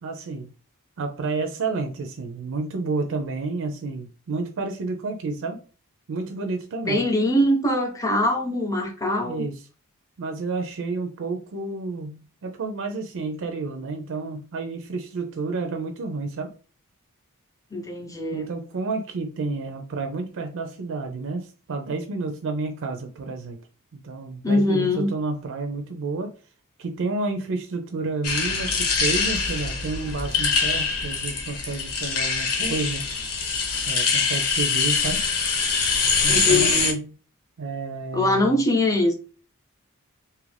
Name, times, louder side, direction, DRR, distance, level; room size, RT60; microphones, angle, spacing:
voice 1, 0.0-0.5 1.0-5.6 6.1-7.0 9.2-9.6 10.2-16.5 18.3-23.6 23.9-26.3 26.8-33.1 33.9-35.3 36.2-37.1 37.6-38.6, right 3 dB, 60° right, 0.4 m, -30 dB
voice 2, 6.9-9.5 17.7-18.5 24.4-25.1 36.3-37.0 38.1-39.1, left 1 dB, 15° left, 0.7 m, -22 dB
sound 1, 28.2-36.9, left 4 dB, 75° left, 0.9 m, -24 dB
2.8 x 2.4 x 3.2 m
head